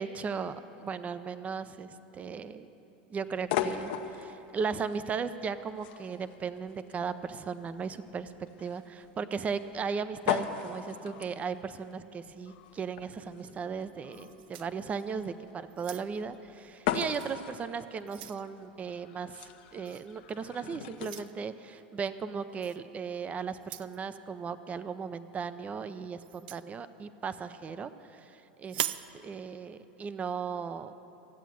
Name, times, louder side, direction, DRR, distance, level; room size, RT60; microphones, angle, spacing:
voice 1, 0.0-2.7 3.1-8.3 8.6-28.9 29.2-30.9, right 5 dB, 25° right, 12 dB, 0.6 m, -37 dB
sound 1, 3.4-21.3, left 9 dB, 65° left, 0.8 m, -39 dB
sound 2, 14.1-15.3 15.7-16.3 17.1-17.3 17.7-18.5 19.9-20.1 21.0-21.3 22.6-22.8 23.6-24.0 26.2-26.7 28.6-29.1, right 13 dB, 75° right, 0.4 m, -39 dB
14.5 x 8.2 x 9.2 m, 2.9 s
hypercardioid pair, 105°, 5 cm